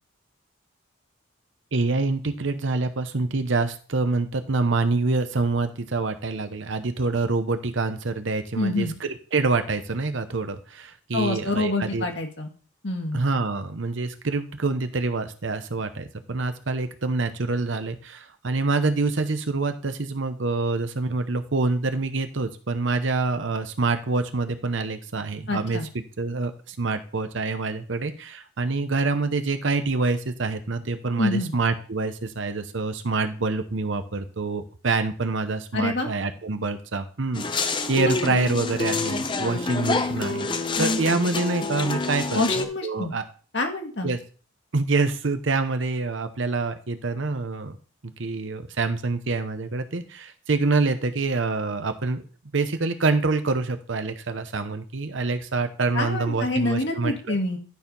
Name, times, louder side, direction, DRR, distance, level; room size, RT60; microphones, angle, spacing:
voice 1, 1.7-12.1 13.1-25.8 26.2-43.2 44.0-44.2 44.7-47.8 48.2-52.2 52.5-57.4, right 3 dB, 70° right, 8 dB, 0.8 m, -26 dB
voice 2, 8.5-9.0 11.1-12.5 12.8-13.2 25.5-25.9 31.2-31.5 35.7-36.1 38.3-38.4 42.3-43.1 43.5-44.1 55.9-57.6, left 2 dB, 60° left, 3 dB, 1.8 m, -26 dB
sound 1, 37.3-42.6, left 3 dB, 25° left, 0.6 m, -27 dB
11.5 x 4.5 x 5.4 m, 0.39 s
head